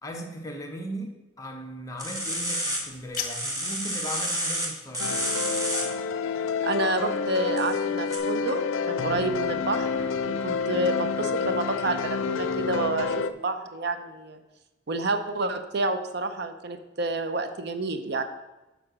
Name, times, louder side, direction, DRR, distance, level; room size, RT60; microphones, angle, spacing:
voice 1, 0.0-5.1, equal, 15° left, 2 dB, 1.0 m, -38 dB
sound 1, 2.0-2.8 3.1-4.7 4.9-5.8 7.6-7.8 8.1-8.2, right 1 dB, 20° right, 1.5 m, -29 dB
sound 2, 2.7-3.7, left 8 dB, 45° left, 0.9 m, -37 dB
sound 3, 5.0-13.3, left 5 dB, 85° left, 0.4 m, -28 dB
voice 2, 6.6-14.4 14.9-18.2, right 2 dB, 55° right, 9 dB, 0.6 m, -29 dB
7.7 x 5.0 x 6.2 m, 1.1 s
head